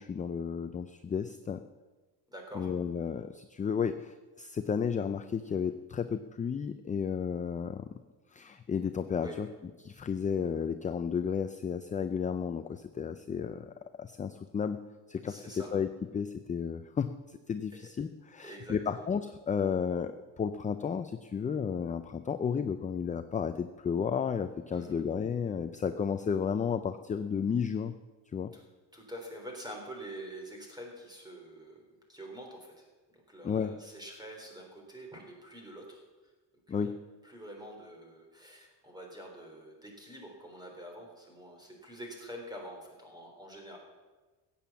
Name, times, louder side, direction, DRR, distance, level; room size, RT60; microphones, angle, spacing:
voice 1, 0.0-1.6 2.5-7.9 8.3-9.5 9.8-14.8 15.1-15.3 15.7-15.9 16.1-27.9 28.3-28.5 33.4-33.7 36.7-37.0, left 6 dB, 20° left, 9 dB, 0.4 m, -33 dB
voice 2, 2.3-2.7 9.2-9.4 15.3-15.7 17.7-17.8 18.4-19.0 24.7-25.0 28.5-28.6 28.9-32.9 33.1-36.3 36.7-36.9 37.2-43.8, right 1 dB, 10° right, 1 dB, 3.6 m, -46 dB
15.0 x 8.7 x 7.1 m, 1.3 s
cardioid pair, 140°, 42 cm